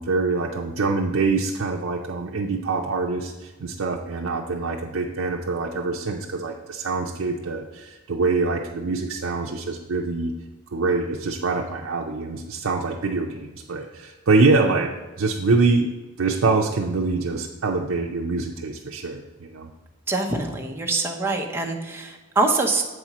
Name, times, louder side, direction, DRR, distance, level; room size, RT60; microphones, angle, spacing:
voice 1, 0.0-10.3 10.7-15.9 16.2-19.7, right 3 dB, 75° right, 0 dB, 0.5 m, -24 dB
voice 2, 20.1-22.8, right 3 dB, 10° right, 0 dB, 0.7 m, -24 dB
7.9 x 4.3 x 5.9 m, 1.2 s
head